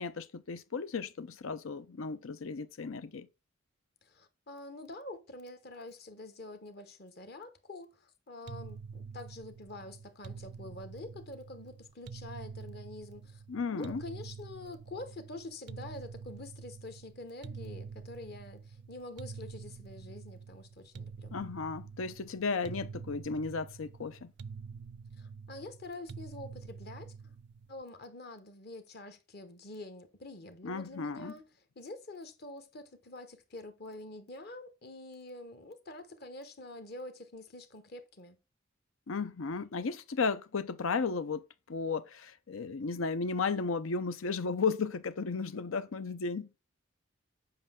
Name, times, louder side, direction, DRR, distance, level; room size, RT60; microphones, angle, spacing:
voice 1, 0.0-3.3 13.5-14.0 21.3-24.3 30.6-31.3 39.1-46.5, left 4 dB, 85° left, 0.6 m, -34 dB
voice 2, 4.0-13.4 13.7-21.3 25.2-27.3 27.7-31.4 31.8-38.4, left 2 dB, 50° left, 1.0 m, -46 dB
sound 1, 8.5-27.8, right 5 dB, 60° right, 0.4 m, -47 dB
7.8 x 5.4 x 3.7 m
head